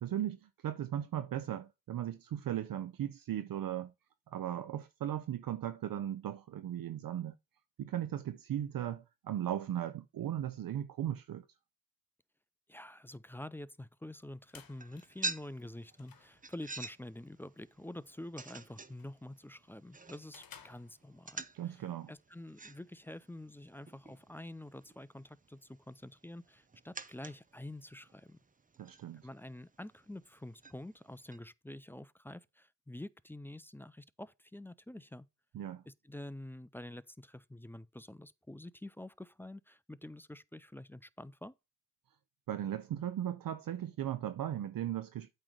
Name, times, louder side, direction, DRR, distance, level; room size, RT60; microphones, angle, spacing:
voice 1, 0.0-3.9 4.3-7.3 7.8-11.4 21.5-22.1 28.8-29.3 35.5-35.8 42.5-45.3, right 11 dB, 50° right, 0.6 m, -37 dB
voice 2, 12.7-28.4 29.2-35.3 35.9-41.5, left 1 dB, 5° left, 0.4 m, -47 dB
sound 1, 14.1-21.6, left 7 dB, 50° left, 1.2 m, -61 dB
sound 2, 14.6-31.4, right 3 dB, 20° right, 0.8 m, -49 dB
8.6 x 3.3 x 6.4 m
supercardioid pair, 50°, 43 cm